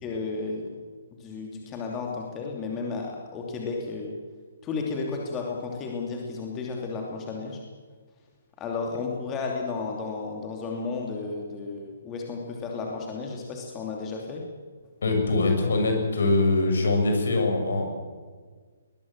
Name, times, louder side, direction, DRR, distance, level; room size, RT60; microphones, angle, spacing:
voice 1, 0.0-0.7 1.2-4.2 4.6-7.6 8.6-14.4, left 4 dB, 20° left, 0 dB, 2.9 m, -33 dB
voice 2, 15.0-17.9, left 2 dB, 60° left, 4 dB, 6.7 m, -23 dB
21.5 x 21.0 x 7.6 m, 1.5 s
figure-of-eight pair, 130°, 0 cm